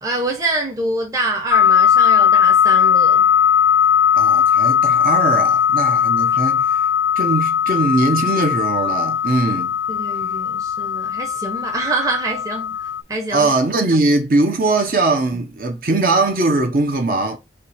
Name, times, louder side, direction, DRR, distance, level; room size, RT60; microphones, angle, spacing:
voice 1, 0.0-3.3 9.9-12.8 13.1-13.5 15.3-15.4, right 2 dB, 20° right, 0.8 m, -25 dB
sound 1, 1.5-13.0, left 8 dB, 85° left, 0.3 m, -17 dB
voice 2, 4.1-6.8 7.2-9.7 13.3-17.4, right 2 dB, 55° right, 0.9 m, -20 dB
5.5 x 2.4 x 3.4 m
head